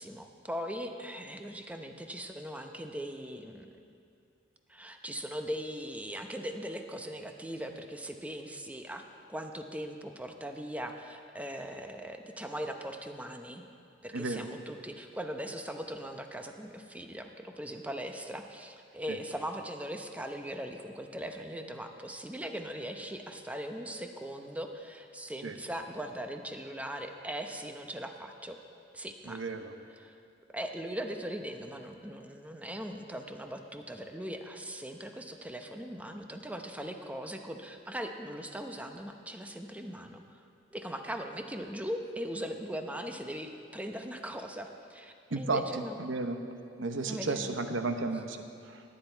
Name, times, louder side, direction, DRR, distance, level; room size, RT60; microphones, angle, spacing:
voice 1, 0.0-3.7 4.7-13.6 14.0-28.6 28.9-29.4 30.0-30.1 30.5-40.4 40.7-46.0 47.1-47.6, equal, 10° right, 5 dB, 0.7 m, -40 dB
voice 2, 14.1-14.5 19.1-19.2 25.4-25.6 29.3-29.7 45.3-46.4 46.8-48.8, right 3 dB, 85° right, 7 dB, 0.9 m, -33 dB
18.0 x 9.9 x 4.5 m, 2.4 s
head